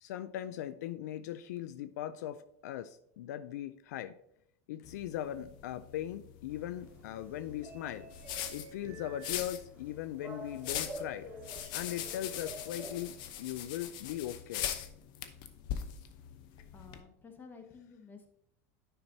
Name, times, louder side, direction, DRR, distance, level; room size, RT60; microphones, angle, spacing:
voice 1, 0.0-4.1 4.7-8.1 8.5-11.3 11.7-14.7, left 12 dB, 80° left, 13 dB, 0.4 m, -39 dB
sound 1, 4.8-17.0, left 10 dB, 55° left, 0.8 m, -42 dB
sound 2, 6.5-13.5, equal, 20° right, 2.0 m, -49 dB
voice 2, 16.7-18.3, left 5 dB, 20° left, 4 dB, 1.5 m, -52 dB
9.9 x 5.8 x 2.7 m, 0.70 s
supercardioid pair, 110°, 9 cm